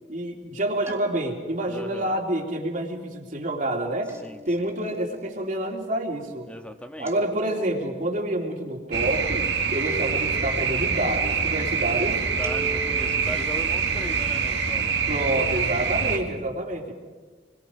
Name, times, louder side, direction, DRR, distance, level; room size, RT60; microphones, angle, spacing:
voice 1, 0.1-4.1 4.4-6.5 7.0-12.3 15.1-16.9, right 1 dB, 50° right, 1 dB, 3.1 m, -28 dB
sound 1, 0.9-1.7 4.1-4.9 7.0-7.9 9.9-10.7 12.4-13.3, right 1 dB, 15° right, 2.4 m, -39 dB
voice 2, 1.7-2.1 4.2-4.7 6.5-7.1 12.4-15.0, equal, 5° left, 5 dB, 1.5 m, -38 dB
sound 2, 8.9-16.2, right 5 dB, 80° right, 2.2 m, -25 dB
27.0 x 22.0 x 5.1 m, 1.4 s
head